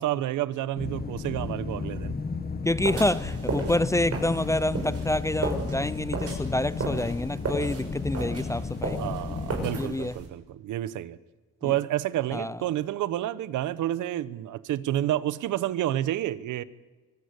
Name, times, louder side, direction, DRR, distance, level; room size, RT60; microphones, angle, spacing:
voice 1, 0.0-2.2 9.0-11.2 11.6-16.6, right 13 dB, 85° right, 1.0 m, -29 dB
sound 1, 0.8-9.8, left 4 dB, 30° left, 1.6 m, -33 dB
voice 2, 2.6-9.1 9.8-10.1 11.6-11.7 12.3-12.6, left 1 dB, 10° left, 0.6 m, -28 dB
sound 2, 2.8-10.3, right 3 dB, 50° right, 6.7 m, -34 dB
24.0 x 17.5 x 8.2 m
cardioid pair, 90°, 30 cm